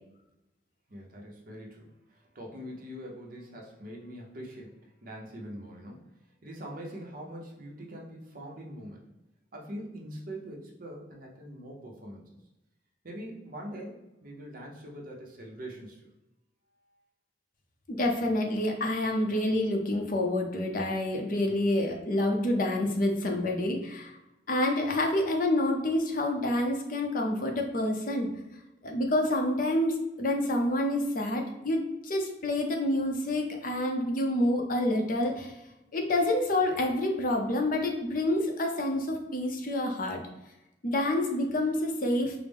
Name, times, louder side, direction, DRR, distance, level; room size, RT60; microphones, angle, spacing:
voice 1, 0.9-6.1 6.4-9.1 9.5-12.2 13.0-16.1 21.4-21.6, equal, 50° right, -1 dB, 0.8 m, -43 dB
voice 2, 17.9-24.2 24.5-28.3 28.8-35.5 35.9-40.2 40.8-42.3, left 1 dB, 50° left, 3 dB, 0.6 m, -28 dB
4.8 x 2.0 x 3.5 m, 0.94 s
head